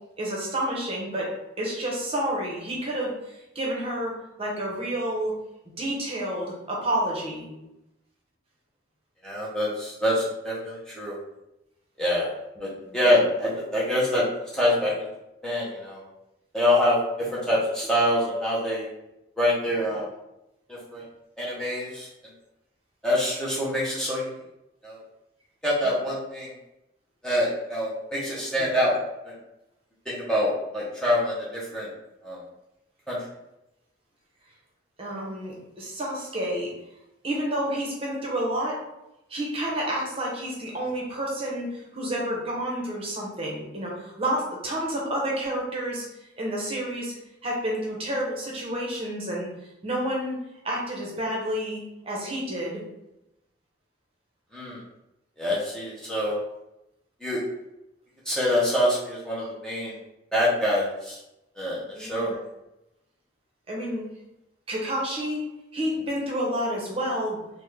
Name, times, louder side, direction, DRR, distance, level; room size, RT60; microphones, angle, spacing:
voice 1, 0.2-1.3 1.6-5.4 5.8-7.5 12.6-13.0 35.0-36.7 37.2-38.8 39.3-46.1 46.4-47.1 47.4-49.5 49.8-50.4 50.6-52.8 61.9-62.4 63.7-64.1 64.7-65.4 65.7-67.4, right 1 dB, 30° right, -3 dB, 0.7 m, -29 dB
voice 2, 9.2-11.2 12.0-12.3 12.6-14.3 14.5-14.9 15.4-16.0 16.5-18.9 19.4-20.1 20.7-21.0 21.4-22.1 23.0-24.3 24.8-25.0 25.6-26.5 27.2-28.9 29.2-29.3 30.1-31.9 32.2-32.4 33.1-33.2 54.5-54.8 55.4-56.4 57.2-57.4 58.3-59.9 60.3-61.2 61.6-62.4, left 1 dB, 5° left, -7 dB, 0.6 m, -25 dB
3.4 x 2.1 x 3.2 m, 0.90 s
head